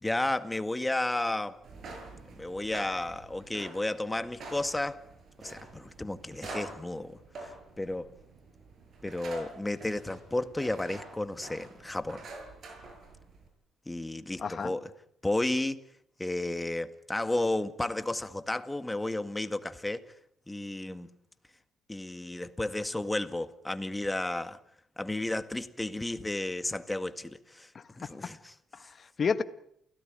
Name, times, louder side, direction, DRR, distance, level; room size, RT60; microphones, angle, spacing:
voice 1, 0.0-1.6 2.4-5.0 5.4-7.5 7.8-8.1 9.0-12.3 13.9-14.9 15.2-15.8 16.2-20.0 20.5-21.1 21.9-24.6 25.0-27.7 28.0-28.5, left 2 dB, 10° left, 1.8 m, -32 dB
sound 1, 1.6-13.5, right 2 dB, 55° right, 7.7 m, -47 dB
voice 2, 14.4-14.7 27.7-28.1 28.7-29.4, left 5 dB, 45° left, 1.5 m, -32 dB
29.0 x 17.5 x 9.1 m
cardioid pair, 90°, 0 cm